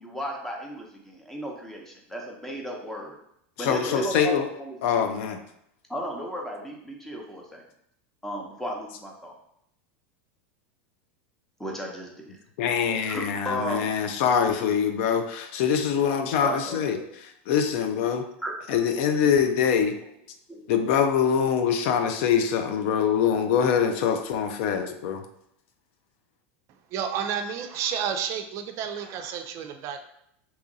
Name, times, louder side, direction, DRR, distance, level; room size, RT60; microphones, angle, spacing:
voice 1, 0.0-3.2 3.6-5.0 5.9-7.6 8.2-9.3 11.6-12.4 12.9-13.9 16.4-17.0 18.4-18.8 20.5-20.7, equal, 5° left, 0 dB, 0.8 m, -34 dB
voice 2, 3.6-4.5 4.8-5.4 12.6-17.0 17.5-18.3 18.7-19.9 20.7-25.2, left 7 dB, 65° left, 7 dB, 0.4 m, -24 dB
voice 3, 26.9-30.0, right 7 dB, 45° right, 6 dB, 0.4 m, -31 dB
2.9 x 2.6 x 3.9 m, 0.74 s
supercardioid pair, 115°, 7 cm